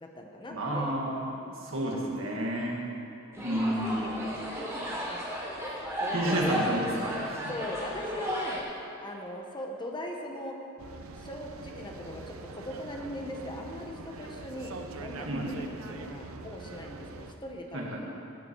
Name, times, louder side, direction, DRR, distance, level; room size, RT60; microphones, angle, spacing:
voice 1, 0.0-0.9 2.8-3.1 3.4-3.9 4.2-4.8 5.1-5.2 5.6-7.0 7.5-8.7 9.0-10.6 11.2-18.1, left 1 dB, 20° left, 1 dB, 1.1 m, -40 dB
voice 2, 0.5-2.9 3.4-4.3 6.1-7.5 15.3-15.6 17.7-18.1, right 1 dB, 70° right, -2 dB, 2.0 m, -31 dB
sound 1, 3.3-8.6, equal, 15° right, 3.0 m, -34 dB
sound 2, 10.8-17.3, right 3 dB, 85° right, 0.7 m, -43 dB
15.5 x 8.8 x 4.7 m, 2.7 s
head